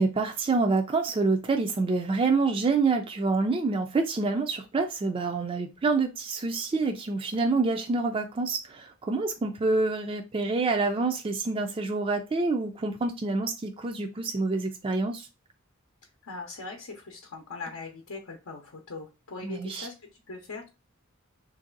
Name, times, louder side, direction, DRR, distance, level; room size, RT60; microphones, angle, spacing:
voice 1, 0.0-15.3 19.4-19.9, right 3 dB, 25° right, 4 dB, 0.3 m, -27 dB
voice 2, 16.2-20.7, left 3 dB, 75° left, 1 dB, 0.7 m, -41 dB
3.2 x 2.6 x 3.8 m, 0.29 s
head